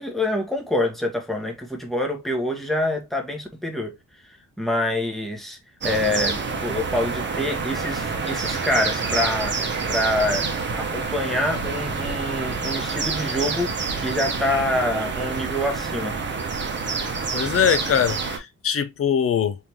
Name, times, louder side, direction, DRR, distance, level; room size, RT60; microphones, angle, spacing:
voice 1, 0.0-4.0 4.2-5.6 5.8-9.6 9.9-16.2, left 1 dB, ahead, 1.2 m, -26 dB
sound 1, 5.8-18.4, right 4 dB, 35° right, 1.0 m, -27 dB
voice 2, 17.3-19.6, left 8 dB, 45° left, 0.6 m, -22 dB
3.8 x 3.5 x 2.9 m
wide cardioid pair, 135°, 31 cm